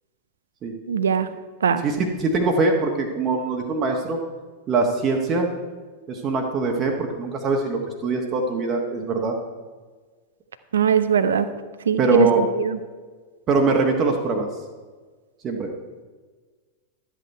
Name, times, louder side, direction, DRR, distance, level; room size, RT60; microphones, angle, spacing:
voice 1, 0.9-1.3 1.6-1.8 10.7-11.5 11.9-12.3 12.6-12.8, right 7 dB, 65° right, 12 dB, 0.6 m, -20 dB
voice 2, 1.8-4.2 4.7-5.5 6.1-9.4 12.0-12.4 13.5-14.5 15.4-15.7, right 3 dB, 30° right, 1 dB, 1.4 m, -22 dB
12.5 x 8.1 x 4.6 m, 1.4 s
figure-of-eight pair, 90°, 0 cm